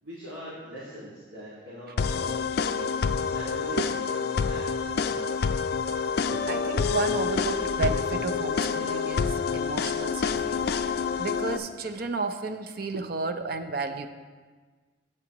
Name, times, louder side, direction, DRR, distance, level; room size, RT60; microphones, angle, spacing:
voice 1, 0.0-2.9 3.2-3.8 4.1-5.1, equal, 85° right, -7 dB, 2.0 m, -42 dB
sound 1, 2.0-11.6, left 5 dB, 50° left, 0.3 m, -27 dB
sound 2, 5.5-11.6, left 2 dB, 30° right, 1.4 m, -45 dB
voice 2, 5.8-14.1, right 3 dB, 50° right, 8 dB, 0.5 m, -33 dB
13.0 x 7.6 x 3.0 m, 1.5 s
head